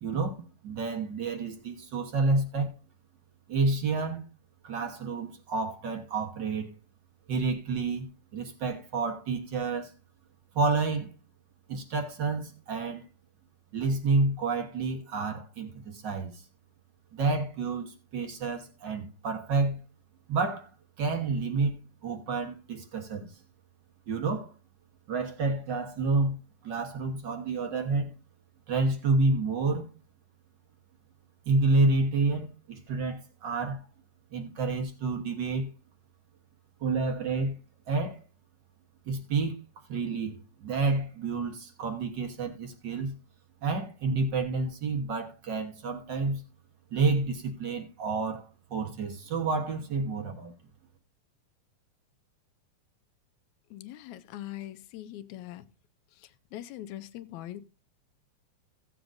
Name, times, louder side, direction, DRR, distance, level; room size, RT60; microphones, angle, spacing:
voice 1, 0.0-2.7 3.5-4.2 4.6-6.7 7.3-9.9 10.5-11.1 11.7-13.0 13.7-16.4 17.1-19.8 20.3-20.7 21.0-21.8 22.0-23.4 24.1-24.5 25.1-26.4 26.6-28.1 28.7-29.9 31.4-33.9 34.3-35.7 36.8-37.5 37.9-38.2 39.1-43.1 43.6-46.4 46.9-50.5, right 3 dB, 55° right, 1.2 m, -29 dB
voice 2, 53.7-55.6 56.5-57.6, left 13 dB, 75° left, 1.9 m, -41 dB
16.0 x 7.8 x 2.6 m
omnidirectional pair, 3.6 m